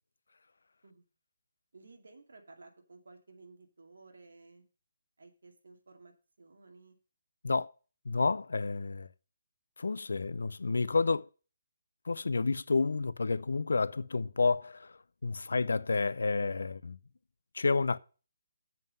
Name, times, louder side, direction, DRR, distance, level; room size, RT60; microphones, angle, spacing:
voice 1, 1.7-4.7 5.2-7.0, right 3 dB, 80° right, 2.4 m, -56 dB
voice 2, 8.1-9.1 9.8-11.3 12.1-14.9 15.2-17.0 17.5-18.0, left 4 dB, 85° left, 0.5 m, -30 dB
7.5 x 5.7 x 7.7 m
hypercardioid pair, 180°, 0 cm